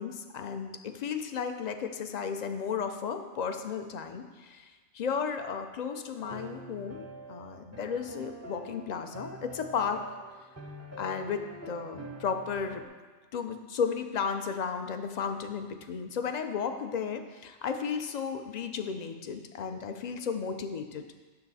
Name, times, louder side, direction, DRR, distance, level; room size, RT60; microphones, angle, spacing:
voice 1, 0.0-10.0 11.0-12.8 13.3-21.0, left 6 dB, 50° left, 7 dB, 0.5 m, -34 dB
sound 1, 6.2-12.9, right 1 dB, 15° right, 0.6 m, -45 dB
9.4 x 6.8 x 4.1 m, 1.4 s
omnidirectional pair, 1.2 m